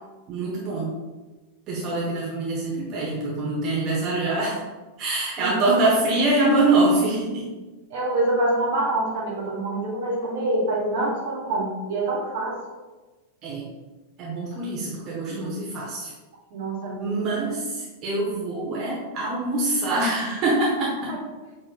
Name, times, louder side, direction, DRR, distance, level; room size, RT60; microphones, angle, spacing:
voice 1, 0.3-0.9 1.7-4.6 5.0-7.5 13.4-13.7 14.2-16.1 17.0-21.1, right 2 dB, 35° right, -5 dB, 1.0 m, -24 dB
voice 2, 7.9-12.6 15.3-15.6 16.5-17.2 21.1-21.2, right 2 dB, 55° right, -3 dB, 1.2 m, -26 dB
5.9 x 3.1 x 2.3 m, 1.2 s
figure-of-eight pair, 90°, 0 cm